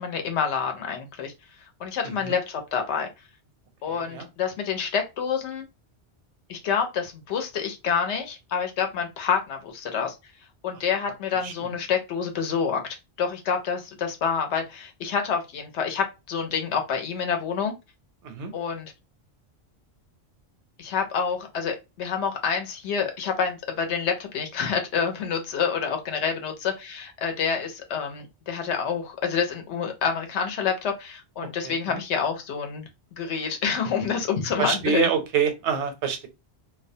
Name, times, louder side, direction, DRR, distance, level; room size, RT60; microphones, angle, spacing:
voice 1, 0.0-1.3 1.8-3.1 3.8-5.7 6.5-10.2 10.6-12.8 13.2-17.7 18.5-18.9 20.8-32.8 33.2-35.1, left 6 dB, 80° left, 0.9 m, -27 dB
voice 2, 31.4-31.7 34.6-36.3, right 7 dB, 85° right, 0.9 m, -26 dB
2.3 x 2.1 x 2.6 m
omnidirectional pair, 1.2 m